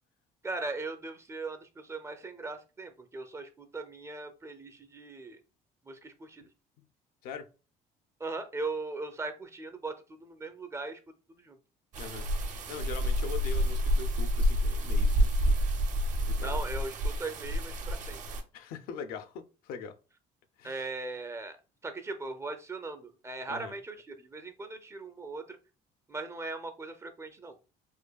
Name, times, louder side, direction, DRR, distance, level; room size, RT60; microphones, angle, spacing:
voice 1, 0.4-5.4 5.8-6.4 8.2-11.0 11.4-11.6 16.4-18.2 20.6-21.6 21.8-25.6 26.1-27.6, right 3 dB, 20° right, 0.5 m, -39 dB
sound 1, 11.9-18.4, equal, 55° right, 0.7 m, -28 dB
voice 2, 12.0-12.3 12.7-15.6 16.2-16.6 18.5-19.9 20.6-20.8 23.5-23.7, left 6 dB, 75° left, 0.5 m, -42 dB
5.0 x 2.2 x 2.3 m
cardioid pair, 115°, 15 cm